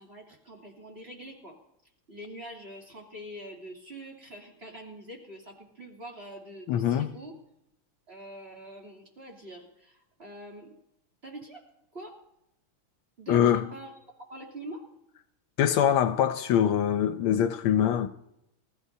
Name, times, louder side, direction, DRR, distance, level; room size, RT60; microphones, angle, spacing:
voice 1, 0.0-1.6 2.1-7.3 8.1-10.7 11.2-11.6 11.9-12.2 13.2-13.9 14.3-14.8, right 1 dB, 30° right, 3.1 m, -44 dB
voice 2, 6.7-7.1 13.3-13.7 15.6-18.1, left 9 dB, 80° left, 1.5 m, -23 dB
26.0 x 14.5 x 2.7 m
omnidirectional pair, 2.3 m